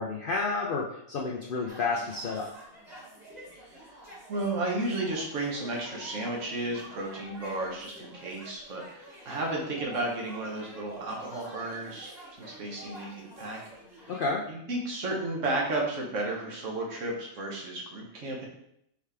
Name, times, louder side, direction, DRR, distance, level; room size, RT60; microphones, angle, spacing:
voice 1, 0.0-2.5 14.1-14.4, left 3 dB, 70° left, -2 dB, 0.5 m, -30 dB
sound 1, 1.7-14.3, right 1 dB, 25° right, 1.8 m, -48 dB
voice 2, 4.3-13.6 13.9-14.0 14.5-18.5, right 2 dB, 60° right, -1 dB, 1.3 m, -33 dB
4.6 x 3.4 x 3.3 m, 0.75 s
omnidirectional pair, 1.5 m